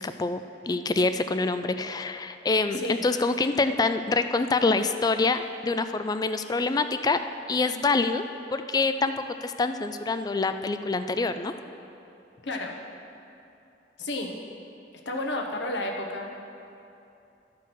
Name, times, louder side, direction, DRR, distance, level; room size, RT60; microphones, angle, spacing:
voice 1, 0.0-7.2 7.5-8.2 8.5-9.1 9.4-11.5, left 3 dB, 20° left, 10 dB, 0.3 m, -26 dB
voice 2, 12.4-12.8 14.0-14.4 15.0-16.4, left 1 dB, 75° left, 1 dB, 1.1 m, -31 dB
13.0 x 4.7 x 6.1 m, 2.7 s
head